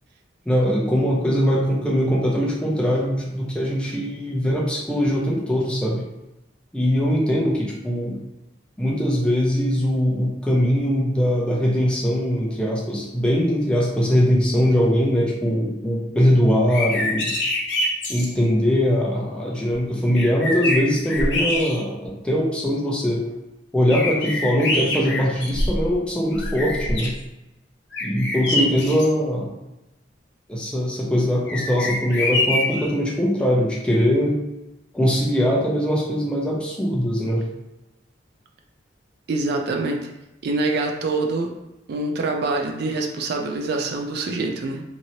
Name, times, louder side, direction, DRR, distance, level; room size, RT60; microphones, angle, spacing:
voice 1, 0.5-6.0 6.7-8.2 8.8-17.3 18.1-23.3 23.7-27.1 28.0-29.5 30.5-34.4 34.9-37.4, equal, 5° left, -4 dB, 0.6 m, -21 dB
sound 1, 16.7-18.3 19.7-19.8 20.1-22.1 22.6-22.7 23.9-26.0 26.3-27.2 27.9-29.1 31.5-32.9, left 2 dB, 65° left, 0.6 m, -25 dB
voice 2, 39.3-40.1 40.4-41.5 41.9-44.8, right 3 dB, 60° right, 2 dB, 0.4 m, -25 dB
2.9 x 2.7 x 2.7 m, 0.94 s
head